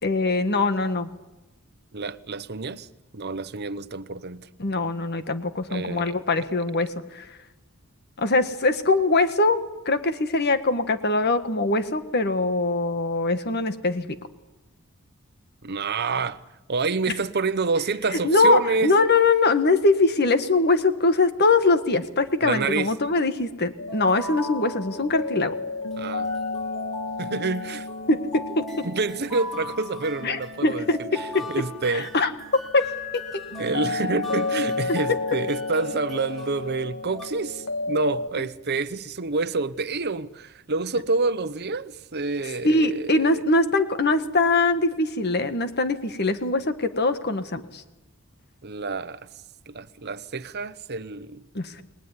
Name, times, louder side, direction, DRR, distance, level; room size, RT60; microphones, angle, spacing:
voice 1, 0.0-1.1 4.6-7.2 8.2-14.1 18.1-25.5 28.1-28.8 30.2-31.4 31.9-32.9 42.6-47.8 51.5-51.8, left 3 dB, 50° left, 1.7 m, -22 dB
voice 2, 1.9-2.9 3.1-4.5 5.7-6.2 15.6-16.4 16.7-18.9 22.4-22.9 26.0-26.3 27.2-27.9 28.8-30.9 31.2-32.1 33.6-43.4 48.6-49.3 49.7-51.4, right 3 dB, 50° right, 1.0 m, -28 dB
sound 1, 23.8-38.3, left 3 dB, 80° left, 2.1 m, -33 dB
sound 2, 23.9-25.4 25.9-37.3, left 1 dB, ahead, 4.4 m, -40 dB
29.5 x 20.5 x 9.8 m
head